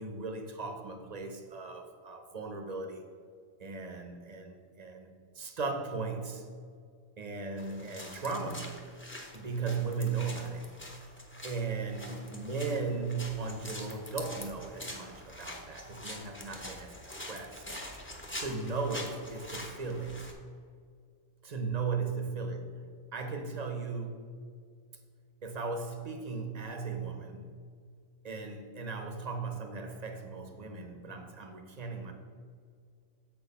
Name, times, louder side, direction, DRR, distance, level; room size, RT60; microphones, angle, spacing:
voice 1, 0.0-3.0 3.6-5.1 5.3-6.5 7.2-8.8 9.3-10.7 11.4-17.7 18.3-20.3 21.4-22.8 23.1-24.2 25.4-27.6 28.2-32.1, right 4 dB, 40° right, 4 dB, 0.8 m, -37 dB
sound 1, 7.6-20.3, left 1 dB, 10° left, 0.7 m, -45 dB
7.4 x 4.7 x 5.3 m, 2.2 s
omnidirectional pair, 1.3 m